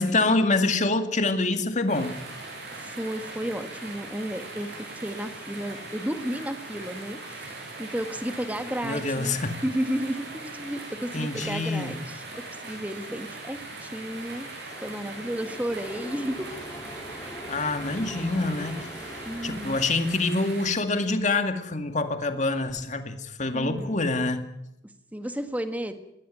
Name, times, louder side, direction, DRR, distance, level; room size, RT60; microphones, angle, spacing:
voice 1, 0.0-2.2 8.8-9.6 11.1-12.0 17.5-24.4, left 3 dB, 40° left, 7 dB, 2.1 m, -26 dB
sound 1, 1.9-20.7, right 2 dB, 55° right, 6.8 m, -40 dB
voice 2, 2.7-7.5 7.8-9.4 9.6-14.5 14.8-16.5 19.2-19.8 23.5-24.0 25.1-25.9, equal, 10° right, 8 dB, 1.6 m, -33 dB
sound 2, 13.5-19.9, equal, 15° left, 1.8 m, -43 dB
21.0 x 16.5 x 9.3 m, 0.85 s
head